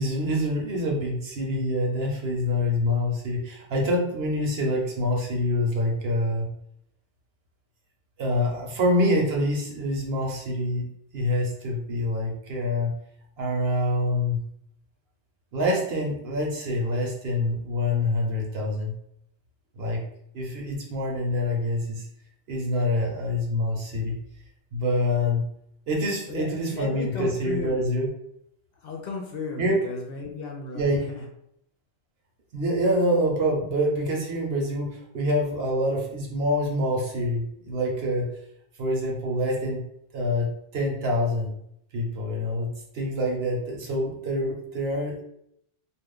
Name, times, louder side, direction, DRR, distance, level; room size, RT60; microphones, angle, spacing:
voice 1, 0.0-6.5 8.2-10.9 11.1-12.9 13.4-14.4 15.5-18.9 19.8-20.0 20.3-22.1 22.5-24.2 24.7-25.5 25.9-28.1 29.6-29.7 30.7-31.0 32.5-38.3 38.8-39.8 40.1-41.5 41.9-45.2, left 1 dB, 65° right, -1 dB, 0.9 m, -26 dB
voice 2, 26.3-27.9 28.8-31.3, left 4 dB, 60° left, 0 dB, 0.7 m, -35 dB
2.4 x 2.3 x 3.5 m, 0.74 s
omnidirectional pair, 1.2 m